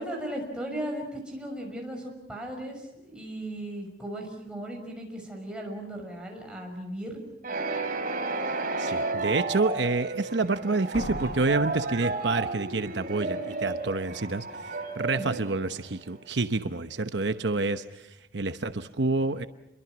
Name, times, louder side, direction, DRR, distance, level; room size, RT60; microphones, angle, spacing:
voice 1, 0.0-7.2 15.1-15.4, right 1 dB, 5° right, 0 dB, 6.2 m, -37 dB
sound 1, 7.4-16.2, right 3 dB, 50° right, 3.6 m, -32 dB
voice 2, 8.8-14.5 14.9-18.1 18.3-19.5, right 3 dB, 75° right, 9 dB, 0.9 m, -28 dB
Slam, 10.9-12.8, left 1 dB, 55° left, 1.5 m, -39 dB
29.5 x 23.0 x 6.1 m, 0.93 s
head